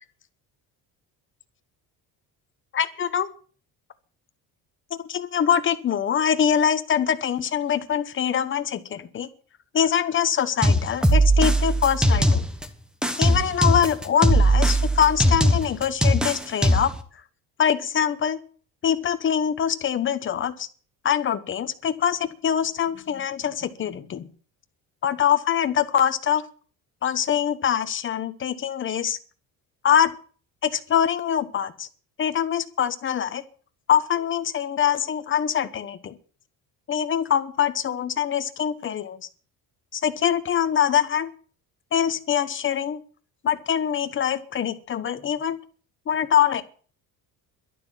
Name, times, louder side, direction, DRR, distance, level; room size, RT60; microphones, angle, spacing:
voice 1, 2.7-3.3 5.1-9.3 9.7-12.4 13.2-16.9 17.6-18.4 18.8-20.7 21.0-24.3 25.0-26.4 27.0-29.2 29.8-30.1 30.6-31.9 32.2-33.4 33.9-36.2 36.9-39.2 39.9-41.3 41.9-43.0 43.4-45.6 46.1-46.6, left 9 dB, 30° left, 11 dB, 1.1 m, -24 dB
sound 1, 10.6-12.6 13.0-17.0, right 1 dB, ahead, 1.1 m, -20 dB
12.0 x 11.5 x 7.3 m, 0.43 s
cardioid pair, 170°, 38 cm